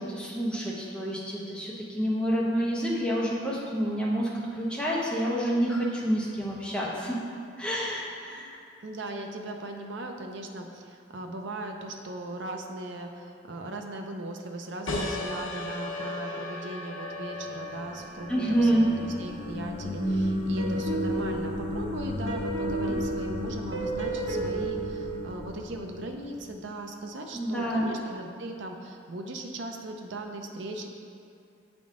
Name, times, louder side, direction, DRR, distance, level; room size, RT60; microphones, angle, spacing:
voice 1, 0.0-7.2 7.6-8.6 18.3-18.9 27.3-27.9, equal, 5° left, -5 dB, 0.8 m, -28 dB
voice 2, 8.8-30.9, right 2 dB, 70° right, 3 dB, 0.6 m, -38 dB
sound 1, 14.9-20.1, left 2 dB, 85° left, 0.8 m, -37 dB
sound 2, 17.5-26.7, left 3 dB, 40° left, 0.3 m, -37 dB
sound 3, 20.0-25.3, right 2 dB, 85° right, 1.0 m, -31 dB
7.8 x 3.6 x 3.7 m, 2.5 s
head